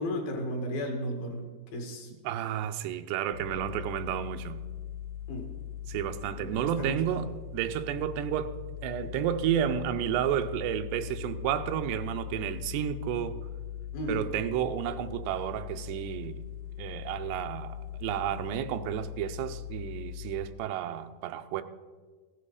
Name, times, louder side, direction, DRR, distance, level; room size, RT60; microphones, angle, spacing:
voice 1, 0.0-1.4 1.7-2.1 3.7-3.8 5.3-5.5 6.4-7.2 9.0-9.1 13.9-14.2, left 1 dB, 65° left, 3.7 m, -34 dB
voice 2, 2.2-4.6 5.9-7.3 7.5-8.5 8.8-13.4 14.1-16.4 16.8-21.6, right 10 dB, 85° right, 2.8 m, -31 dB
sound 1, 3.3-20.5, left 10 dB, 90° left, 1.9 m, -40 dB
16.5 x 9.9 x 4.9 m
omnidirectional pair, 4.8 m